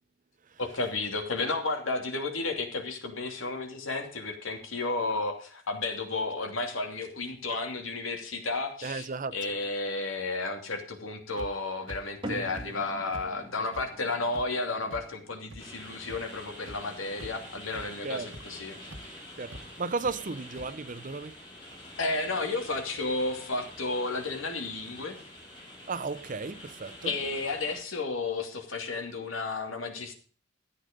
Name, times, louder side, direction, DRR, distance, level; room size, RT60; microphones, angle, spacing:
voice 1, 0.6-18.8 22.0-25.1 27.0-30.1, left 3 dB, 90° left, 2.8 m, -32 dB
voice 2, 8.8-9.3 18.0-18.3 19.4-21.3 25.9-27.1, right 4 dB, 40° right, 0.6 m, -34 dB
sound 1, 11.4-11.5 11.9-12.0 12.5-12.7 13.1-13.2 13.7-13.8 14.3-14.4 14.9-15.0 15.5-15.6 16.1-16.2 16.7-16.8 17.2-17.4 17.7-17.8 18.3-18.4 18.9-19.0 19.5-19.6 20.0-20.1 20.6-20.7, equal, 75° right, 1.8 m, -43 dB
sound 2, 12.2-19.0, right 1 dB, 25° right, 2.1 m, -46 dB
sound 3, 15.6-27.8, left 1 dB, 25° left, 5.5 m, -47 dB
13.5 x 8.6 x 5.2 m
head